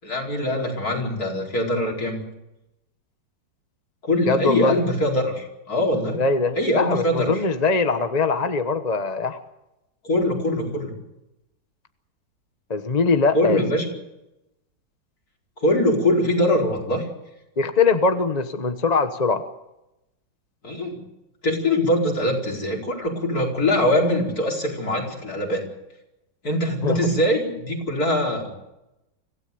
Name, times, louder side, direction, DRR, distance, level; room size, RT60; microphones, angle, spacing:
voice 1, 0.0-2.2 4.0-6.2 6.6-7.4 10.0-11.0 13.3-13.8 15.6-17.1 20.6-21.0 21.4-25.6 26.4-28.5, left 1 dB, 50° left, 0 dB, 5.2 m, -22 dB
voice 2, 4.2-4.8 6.2-9.4 12.7-13.6 17.6-19.4 26.8-27.0, left 4 dB, 25° left, 8 dB, 1.0 m, -22 dB
26.0 x 16.5 x 6.9 m, 0.93 s
omnidirectional pair, 2.0 m